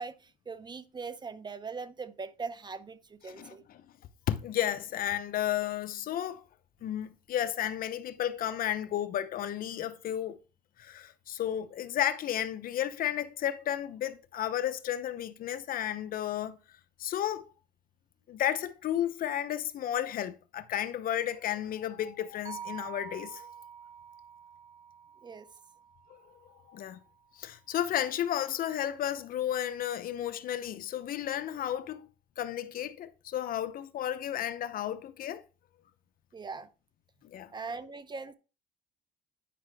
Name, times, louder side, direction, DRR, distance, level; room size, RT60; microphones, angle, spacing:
voice 1, 0.0-3.6 25.2-25.5 36.3-36.7 37.5-38.3, right 4 dB, 25° right, 0.7 m, -40 dB
voice 2, 3.3-3.8 4.3-6.4 6.8-10.4 10.8-16.6 17.0-17.5 18.3-23.5 26.1-26.2 26.7-27.0 27.4-32.1 32.4-35.4 37.2-37.5, left 11 dB, 55° left, 0.7 m, -33 dB
sound 1, 22.4-26.7, right 8 dB, 50° right, 1.6 m, -47 dB
10.0 x 5.6 x 3.4 m
cardioid pair, 110°, 17 cm